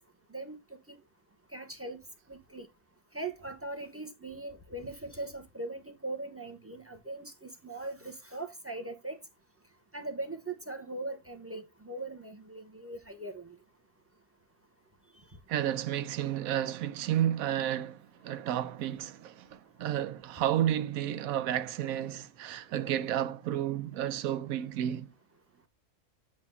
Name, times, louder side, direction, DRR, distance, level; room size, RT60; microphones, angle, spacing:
voice 1, 1.5-2.0 2.3-2.7 3.1-9.2 9.9-13.5, right 2 dB, 10° right, 0.9 m, -40 dB
voice 2, 15.5-25.1, right 11 dB, 85° right, 1.1 m, -31 dB
8.5 x 2.9 x 5.4 m
omnidirectional pair, 1.4 m